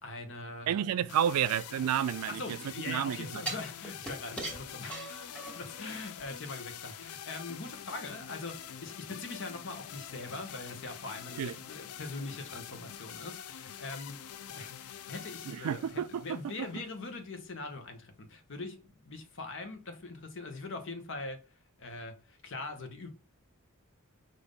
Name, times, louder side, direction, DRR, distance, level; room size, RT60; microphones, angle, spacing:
voice 1, 0.0-0.8 2.3-21.4 21.8-23.1, left 3 dB, 60° left, 0.9 m, -42 dB
voice 2, 0.7-2.4 2.9-3.4 11.4-11.5 15.5-16.4, right 9 dB, 90° right, 0.3 m, -30 dB
sound 1, 1.1-17.1, left 9 dB, 85° left, 0.4 m, -46 dB
sound 2, 1.4-2.6 3.5-5.8 6.2-6.3, right 2 dB, 5° left, 1.1 m, -41 dB
5.2 x 2.6 x 3.5 m
head